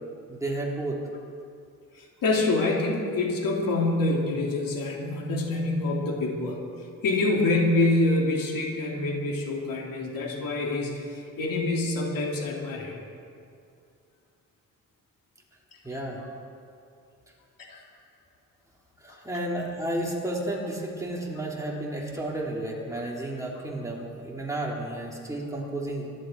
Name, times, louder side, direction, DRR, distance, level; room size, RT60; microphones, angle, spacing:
voice 1, 0.3-1.0 15.8-16.2 19.0-26.1, right 1 dB, 10° right, -3 dB, 3.0 m, -32 dB
voice 2, 1.9-6.6 7.0-12.9 15.9-16.0 17.7-17.8, left 2 dB, 85° left, -2 dB, 3.1 m, -26 dB
24.5 x 11.5 x 4.6 m, 2.4 s
cardioid pair, 120°, 33 cm